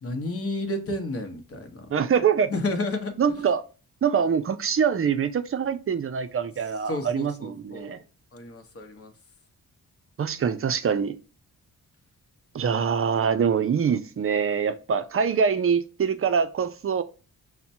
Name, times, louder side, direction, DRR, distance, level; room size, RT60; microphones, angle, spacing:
voice 1, 0.0-1.9 2.5-3.1 6.9-8.0 8.3-9.1, left 2 dB, 40° left, 0.9 m, -31 dB
voice 2, 1.9-2.5 3.2-3.6 4.0-8.0 10.2-11.2 12.5-17.0, right 7 dB, 40° right, 0.5 m, -24 dB
5.8 x 2.2 x 2.7 m
cardioid pair, 100°, 36 cm